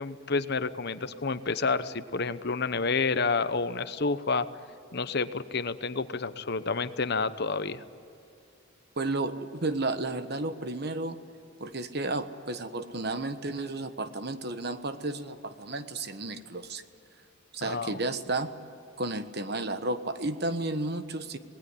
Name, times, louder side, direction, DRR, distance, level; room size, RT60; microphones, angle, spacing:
voice 1, 0.0-4.5 4.9-7.8 17.6-18.0, left 4 dB, 50° left, 12 dB, 0.9 m, -29 dB
voice 2, 9.0-11.2 11.6-16.8 17.5-18.5 19.0-21.4, right 2 dB, 50° right, 10 dB, 1.3 m, -32 dB
26.5 x 19.5 x 9.9 m, 2.6 s
head